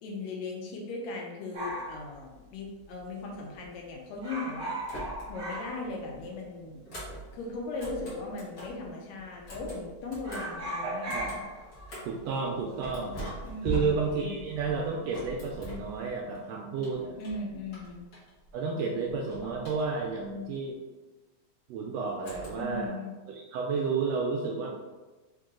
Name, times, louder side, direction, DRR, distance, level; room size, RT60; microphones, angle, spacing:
voice 1, 0.0-4.7 5.3-6.8 7.3-11.1 13.4-13.9 14.2-14.5 17.2-18.1 22.5-23.1, left 3 dB, 75° left, -1 dB, 1.8 m, -38 dB
sound 1, 1.5-3.0 3.3-3.4 3.6-3.9 4.2-6.4 6.7-6.8 7.6-8.3 8.6-8.9 9.2-9.8 10.1-14.8 15.0-15.5, right 1 dB, 40° right, 0.9 m, -39 dB
sound 2, 4.9-5.6 5.9-8.8 9.3-12.2 12.8-16.4 16.8-18.5 18.8-20.2 22.2-22.9, right 2 dB, 45° left, 1.4 m, -41 dB
voice 2, 10.8-11.4 12.0-13.2 13.6-17.2 18.5-20.8 21.7-23.0 23.3-24.7, right 4 dB, 80° right, -1 dB, 1.5 m, -31 dB
4.5 x 2.9 x 3.7 m, 1.2 s
omnidirectional pair, 3.3 m